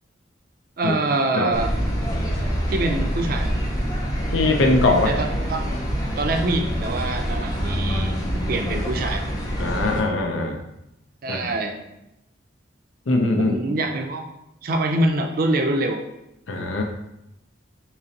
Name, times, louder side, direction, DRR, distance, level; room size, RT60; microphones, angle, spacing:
voice 1, 0.8-1.7 2.7-3.5 5.0-5.7 6.2-8.2 8.5-9.2 11.2-11.8 13.4-14.2 14.6-16.0, right 2 dB, 50° right, 4 dB, 0.4 m, -24 dB
sound 1, 1.5-10.0, equal, 20° left, 0.5 m, -26 dB
voice 2, 4.3-5.1 9.6-10.6 11.3-11.5 13.1-13.6 16.5-16.8, left 2 dB, 90° left, 3 dB, 0.6 m, -21 dB
3.8 x 3.0 x 2.8 m, 0.86 s
head